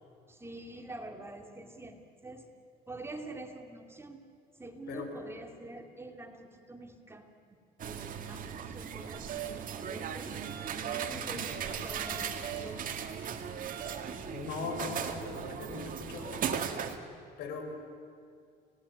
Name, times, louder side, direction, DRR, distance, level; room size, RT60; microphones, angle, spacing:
voice 1, 0.3-2.5 2.9-4.2 4.6-7.3 7.8-10.4 10.9-12.8, right 2 dB, 15° right, 4 dB, 2.6 m, -46 dB
sound 1, 7.8-17.0, right 8 dB, 55° right, 2.1 m, -38 dB
sound 2, 9.1-9.7 10.2-11.2 11.7-12.7 13.2-13.3 13.7-14.2, right 10 dB, 70° right, 3.4 m, -41 dB
voice 2, 11.1-11.6 14.2-17.0 17.4-17.7, left 4 dB, 80° left, 5 dB, 4.9 m, -40 dB
28.5 x 19.0 x 9.7 m, 2.2 s
cardioid pair, 110°, 17 cm